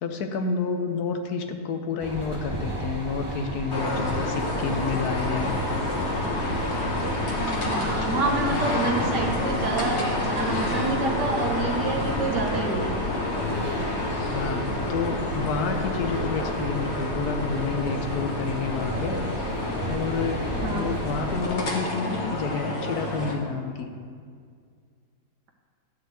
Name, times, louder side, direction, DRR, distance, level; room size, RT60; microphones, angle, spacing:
voice 1, 0.0-5.6 14.3-19.5 19.9-23.9, left 5 dB, 65° left, 6 dB, 1.2 m, -29 dB
sound 1, 2.0-21.4, right 1 dB, 15° right, 1.0 m, -34 dB
sound 2, 3.7-23.4, left 2 dB, 45° left, 1.4 m, -29 dB
voice 2, 7.4-13.0 20.6-21.0, right 3 dB, 75° right, 0 dB, 1.9 m, -28 dB
12.0 x 4.1 x 8.0 m, 2.1 s
omnidirectional pair, 1.8 m